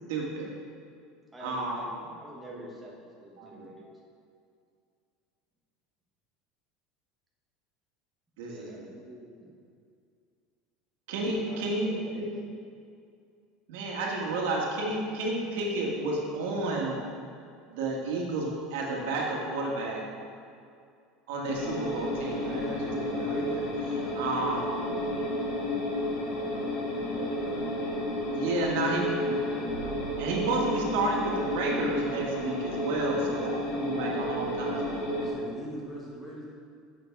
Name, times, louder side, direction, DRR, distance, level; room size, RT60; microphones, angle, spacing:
voice 1, 0.1-0.5 1.4-1.8 2.5-2.7 3.4-3.7 8.4-8.8 11.1-11.9 13.7-17.0 17.7-20.0 21.3-23.4 24.1-24.6 28.3-29.8 30.2-35.0, right 2 dB, 85° right, -2 dB, 1.8 m, -31 dB
voice 2, 1.3-3.9 8.5-9.5 11.5-12.3 24.3-25.6, right 1 dB, 10° right, -4 dB, 1.3 m, -48 dB
sound 1, 21.4-35.3, left 1 dB, 65° left, 2.2 m, -31 dB
voice 3, 22.3-23.7 25.0-25.1 27.1-27.7 35.1-36.5, equal, 15° left, -4 dB, 1.5 m, -41 dB
8.2 x 7.1 x 4.7 m, 2.3 s
cardioid pair, 155°, 0 cm